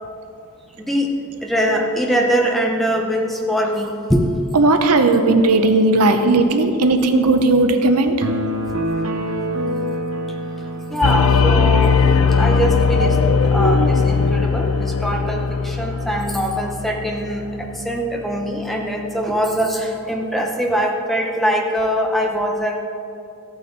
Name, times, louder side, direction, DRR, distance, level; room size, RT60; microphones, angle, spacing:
voice 1, 1.4-4.3 10.9-11.9 12.4-13.2 13.4-22.8, equal, ahead, 1 dB, 0.9 m, -22 dB
voice 2, 4.5-8.1, right 2 dB, 85° right, 7 dB, 0.8 m, -15 dB
sound 1, 8.2-11.8, equal, 65° right, 1.0 m, -26 dB
sound 2, 11.0-17.8, left 5 dB, 65° left, 0.5 m, -18 dB
14.0 x 9.0 x 4.0 m, 2.6 s
head